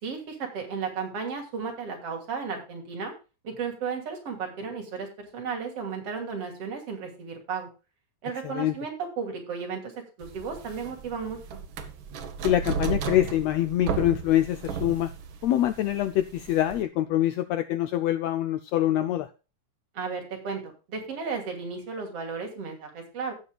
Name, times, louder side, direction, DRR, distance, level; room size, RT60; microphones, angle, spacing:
voice 1, 0.0-3.1 3.4-7.7 8.2-9.9 10.2-11.6 19.9-23.3, right 5 dB, 50° right, 3.4 m, -34 dB
sound 1, 10.2-16.8, right 6 dB, 70° right, 1.2 m, -34 dB
voice 2, 12.4-15.1 15.4-19.3, left 13 dB, 85° left, 1.4 m, -25 dB
17.0 x 7.2 x 2.3 m
omnidirectional pair, 3.7 m